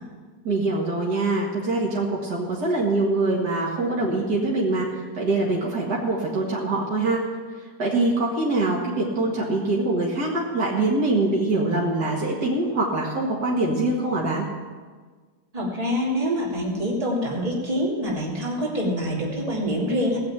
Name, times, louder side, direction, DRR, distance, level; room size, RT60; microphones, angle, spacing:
voice 1, 0.4-4.9 5.1-7.2 7.8-14.5, right 2 dB, 65° right, -4 dB, 2.5 m, -24 dB
voice 2, 15.5-20.2, equal, 20° right, -4 dB, 2.9 m, -25 dB
17.0 x 7.5 x 8.9 m, 1.5 s
omnidirectional pair, 1.9 m